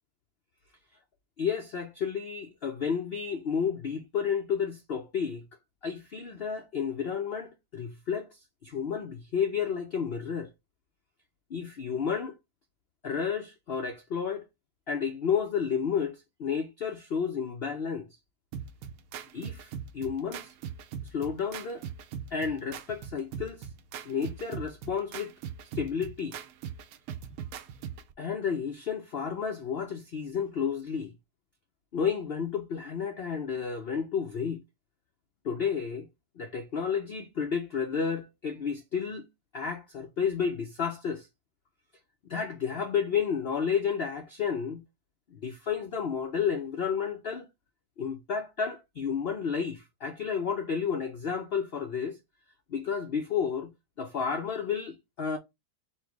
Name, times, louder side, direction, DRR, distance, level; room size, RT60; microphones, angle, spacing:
voice 1, 1.4-5.4 5.8-10.5 11.5-12.4 13.0-14.4 14.9-18.1 19.3-20.5 21.1-21.8 22.3-23.7 24.1-25.3 25.7-26.4 28.2-31.1 31.9-34.6 35.4-36.1 36.4-39.3 39.5-41.3 42.2-44.8 45.3-47.5 48.0-52.2 52.7-53.7 54.0-55.4, left 6 dB, 85° left, 0.5 m, -31 dB
sound 1, 18.5-28.1, right 8 dB, 70° right, 0.9 m, -41 dB
4.4 x 2.2 x 4.5 m
omnidirectional pair, 1.8 m